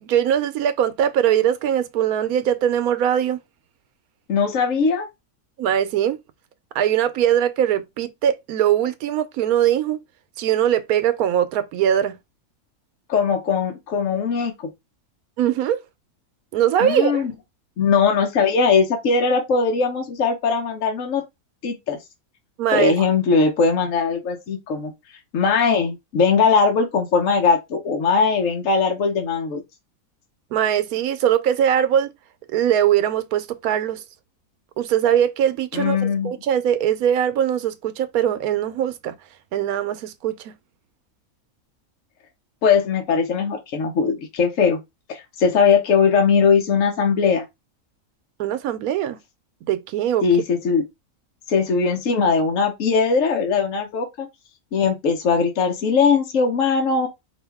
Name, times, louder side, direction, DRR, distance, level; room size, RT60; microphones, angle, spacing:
voice 1, 0.0-3.4 5.6-6.2 6.7-10.0 10.4-12.2 15.4-15.8 16.5-17.3 22.6-22.9 30.5-32.1 32.5-34.0 34.8-39.1 39.5-40.5 48.4-49.2 49.6-50.2, right 10 dB, 80° right, 1.1 m, -21 dB
voice 2, 4.3-5.1 13.1-14.7 16.8-17.3 17.8-21.2 21.6-22.0 22.7-24.9 25.3-29.6 35.7-36.3 42.6-44.8 45.1-47.5 50.2-50.8 51.5-54.3 54.7-57.1, left 5 dB, 65° left, 1.2 m, -20 dB
5.0 x 2.6 x 3.4 m
omnidirectional pair, 1.5 m